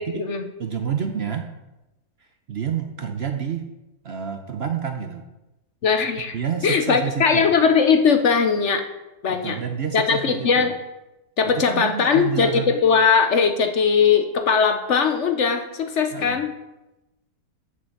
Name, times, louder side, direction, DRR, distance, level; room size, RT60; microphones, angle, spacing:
voice 1, 0.0-0.4 5.8-6.4 6.6-8.8 9.2-9.6 9.9-10.8 11.4-16.5, left 6 dB, 55° left, 7 dB, 1.0 m, -19 dB
voice 2, 0.6-1.5 2.2-3.6 4.0-5.3 6.3-7.5 9.3-10.7 11.4-12.8 16.1-16.4, right 8 dB, 55° right, 6 dB, 0.8 m, -29 dB
7.0 x 6.6 x 7.3 m, 0.98 s
omnidirectional pair, 1.6 m